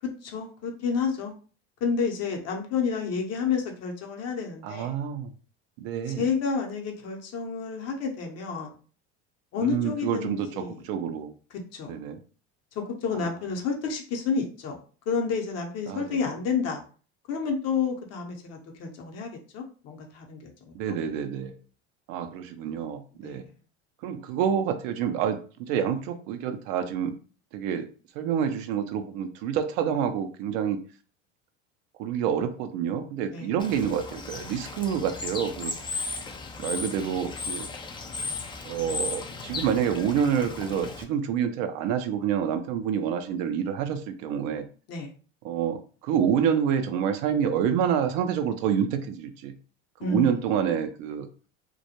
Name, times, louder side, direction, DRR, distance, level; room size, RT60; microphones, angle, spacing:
voice 1, 0.2-1.3 1.8-4.9 6.2-8.7 9.5-10.8 11.5-12.0 12.8-14.8 15.1-16.8 17.3-21.0 23.2-23.4 33.3-33.5 44.9-45.1 50.0-50.5, left 5 dB, 50° left, 2 dB, 0.8 m, -30 dB
voice 2, 4.6-5.3 5.8-6.3 9.6-11.3 11.9-12.2 13.1-13.3 15.9-16.2 20.7-21.6 22.1-23.4 24.0-27.2 27.5-27.9 28.1-30.8 32.0-35.7 36.6-37.7 38.6-44.7 45.4-49.5 50.0-51.3, right 8 dB, 65° right, 8 dB, 0.5 m, -28 dB
Bird / Water, 33.6-41.0, left 4 dB, 15° left, 0.3 m, -36 dB
2.2 x 2.0 x 2.8 m, 0.39 s
hypercardioid pair, 85°, 33 cm